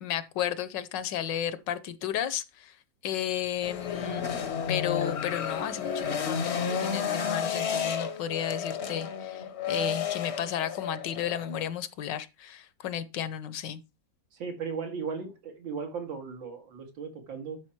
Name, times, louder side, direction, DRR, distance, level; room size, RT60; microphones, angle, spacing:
voice 1, 0.0-2.7 3.0-4.3 4.7-13.8, left 10 dB, 70° left, 1.3 m, -33 dB
sound 1, 3.6-11.7, left 7 dB, 50° left, 0.9 m, -32 dB
voice 2, 14.3-17.6, right 5 dB, 80° right, 2.7 m, -36 dB
12.0 x 4.8 x 4.5 m
omnidirectional pair, 2.1 m